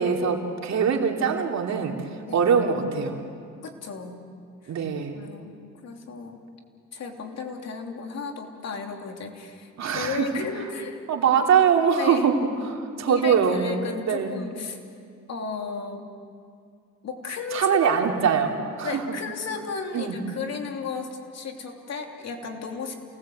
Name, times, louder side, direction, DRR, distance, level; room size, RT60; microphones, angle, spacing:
voice 1, 0.0-1.9 2.3-3.2 4.7-5.1 9.8-10.3 11.1-12.3 13.0-13.7 14.0-14.3 17.5-18.5 18.8-19.0 19.9-20.2, right 7 dB, 65° right, 2 dB, 2.9 m, -22 dB
voice 2, 3.6-4.2 4.6-4.8 5.1-5.6 5.8-6.4 6.9-11.0 12.0-12.3 13.1-14.8 15.3-16.1 17.0-18.1 18.8-22.9, left 5 dB, 60° left, 3 dB, 3.1 m, -34 dB
28.5 x 19.0 x 7.9 m, 2.3 s
cardioid pair, 90°, 30 cm